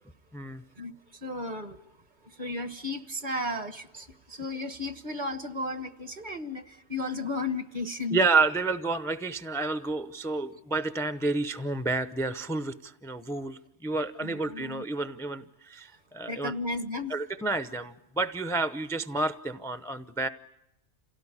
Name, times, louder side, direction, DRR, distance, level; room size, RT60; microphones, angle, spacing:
voice 1, 0.8-1.9 2.2-8.2 14.2-14.8 16.2-17.2, left 2 dB, 45° right, 1.4 m, -34 dB
voice 2, 8.1-16.5 17.1-20.3, right 3 dB, 5° left, 0.7 m, -30 dB
27.5 x 17.5 x 9.9 m
omnidirectional pair, 1.2 m